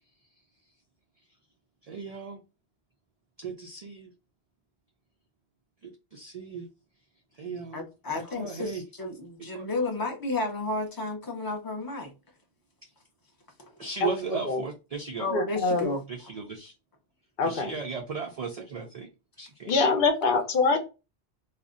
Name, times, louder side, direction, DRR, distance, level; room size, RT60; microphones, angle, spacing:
voice 1, 1.9-2.4 3.4-4.1 6.1-6.7 7.4-7.8 8.1-8.8 9.5-9.7 13.8-15.3 16.1-16.7 17.4-19.1 19.4-19.9, right 5 dB, 55° right, 0.4 m, -36 dB
voice 2, 7.7-12.1 15.2-16.0, left 2 dB, 25° left, 0.5 m, -32 dB
voice 3, 15.3-15.9 17.4-17.8 19.6-20.8, left 4 dB, 60° left, 0.8 m, -24 dB
2.5 x 2.0 x 3.6 m
omnidirectional pair, 1.1 m